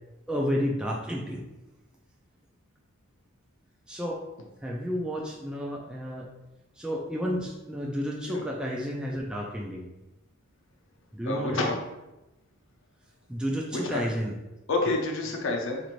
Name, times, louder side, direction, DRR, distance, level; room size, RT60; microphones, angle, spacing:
voice 1, 0.3-1.4 3.9-4.2 4.6-6.3 6.8-9.9 11.1-11.6 13.3-14.4, equal, 5° right, -2 dB, 0.3 m, -31 dB
voice 2, 11.2-11.8 13.7-14.0 14.7-15.8, left 2 dB, 65° left, 1 dB, 0.7 m, -28 dB
4.1 x 2.6 x 3.0 m, 0.99 s
head